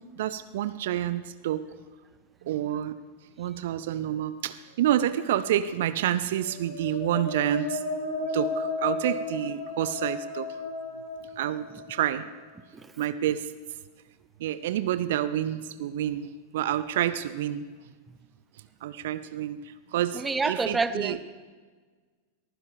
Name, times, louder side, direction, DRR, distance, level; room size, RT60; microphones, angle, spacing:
voice 1, 0.2-1.7 2.5-3.0 3.4-7.8 8.3-10.5 11.4-12.3 13.0-13.5 14.4-17.6 18.8-19.6 19.9-21.2, right 11 dB, 55° right, 14 dB, 0.5 m, -28 dB
sound 1, 6.4-12.2, left 3 dB, 70° left, 5.3 m, -34 dB
voice 2, 20.1-21.2, right 4 dB, 15° right, 13 dB, 0.7 m, -27 dB
22.0 x 15.0 x 3.6 m, 1.5 s
figure-of-eight pair, 90°, 0 cm